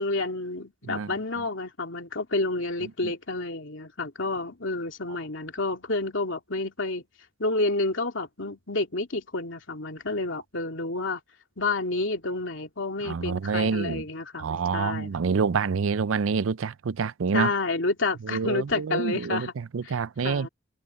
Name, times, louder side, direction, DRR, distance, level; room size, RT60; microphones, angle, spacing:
voice 1, 0.0-7.0 7.4-11.2 11.6-15.1 17.3-19.5 19.8-19.9 20.2-20.5, left 2 dB, 70° left, 2.9 m, -29 dB
voice 2, 13.0-14.0 14.4-17.5 18.2-20.5, right 5 dB, 90° right, 0.5 m, -27 dB
head